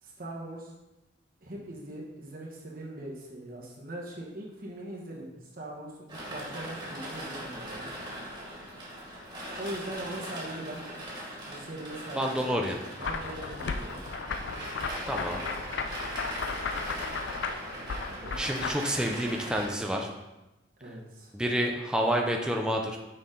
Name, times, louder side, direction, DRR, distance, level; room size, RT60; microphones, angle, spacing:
voice 1, 0.0-0.7 1.4-7.8 9.5-10.8 11.4-12.5 12.9-14.0 17.7-18.4 20.8-21.3, right 1 dB, 45° right, -3 dB, 1.2 m, -41 dB
sound 1, 6.1-19.7, right 1 dB, 20° right, 1.9 m, -40 dB
voice 2, 12.1-12.8 15.1-15.4 18.3-20.1 21.3-23.0, equal, 5° right, 1 dB, 0.5 m, -29 dB
sound 2, 13.0-18.7, left 4 dB, 70° left, 0.4 m, -35 dB
6.6 x 5.5 x 3.8 m, 1.0 s
head